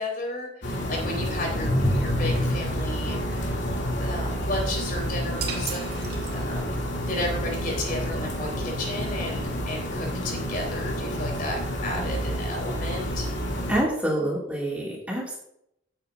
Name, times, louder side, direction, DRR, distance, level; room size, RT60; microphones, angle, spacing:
voice 1, 0.0-3.6 4.0-13.3, left 1 dB, 45° left, 0 dB, 3.6 m, -33 dB
sound 1, 0.6-13.8, equal, 60° left, 2.6 m, -28 dB
sound 2, 5.4-6.9, right 7 dB, 50° right, 1.9 m, -36 dB
voice 2, 13.7-15.4, right 1 dB, 5° right, -4 dB, 2.4 m, -26 dB
16.5 x 8.8 x 2.6 m, 0.74 s
head